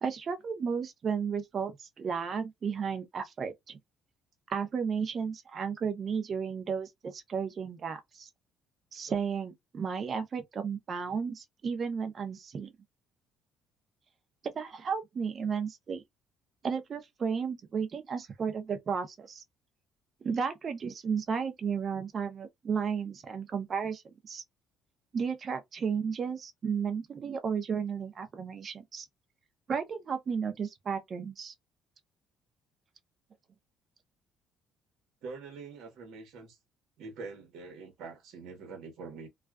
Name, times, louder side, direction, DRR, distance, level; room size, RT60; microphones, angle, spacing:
voice 1, 0.0-3.8 4.5-8.3 8.9-12.7 14.5-16.0 16.6-19.4 20.2-24.4 25.1-29.1 29.7-31.5, right 6 dB, 45° right, 0.6 m, -33 dB
voice 2, 35.2-36.6 37.0-39.3, right 4 dB, 75° right, 1.0 m, -44 dB
2.4 x 2.2 x 2.3 m
cardioid pair, 95°, 0 cm